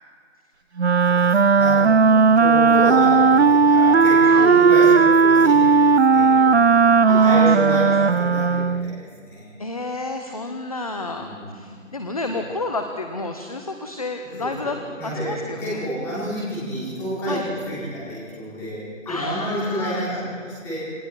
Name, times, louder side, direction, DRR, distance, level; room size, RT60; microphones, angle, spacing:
Wind instrument woodwind instrument, 0.8-9.0, right 5 dB, 55° right, 0.5 m, -15 dB
voice 1, 1.0-1.8 2.3-9.5 11.1-11.7 12.3-12.5 14.3-17.4 17.7-20.8, equal, 5° left, -9 dB, 4.7 m, -29 dB
voice 2, 7.0-7.9 9.6-14.8 15.2-15.9 17.3-17.5 19.1-20.0, left 2 dB, 30° left, 5 dB, 1.0 m, -31 dB
28.0 x 20.5 x 4.6 m, 2.1 s
figure-of-eight pair, 160°, 40 cm